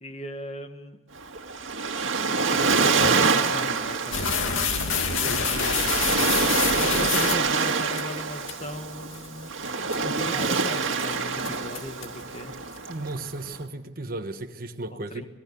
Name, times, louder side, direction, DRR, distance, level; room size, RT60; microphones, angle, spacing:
voice 1, 0.0-1.0 2.5-6.1 6.8-9.5 9.8-12.6 15.1-15.3, left 1 dB, 35° left, 1.8 m, -37 dB
Waves surf, 1.2-13.6, right 4 dB, 75° right, 2.0 m, -26 dB
sound 1, 4.1-8.0 8.5-8.6 9.1-9.3 9.7-10.0 10.4-10.7 11.0-11.1 11.5-12.2, left 6 dB, 85° left, 2.3 m, -26 dB
voice 2, 12.9-15.3, right 2 dB, 45° right, 1.3 m, -35 dB
26.5 x 18.5 x 6.9 m
head